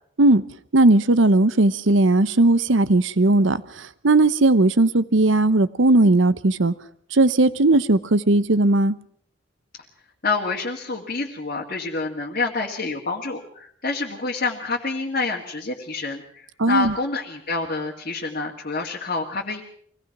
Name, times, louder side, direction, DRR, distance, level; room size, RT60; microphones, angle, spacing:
voice 1, 0.7-6.7 7.1-9.0 16.6-16.9, right 2 dB, 65° right, 0.9 m, -17 dB
voice 2, 10.2-19.6, left 3 dB, 45° left, 2.3 m, -27 dB
24.5 x 18.0 x 6.0 m
head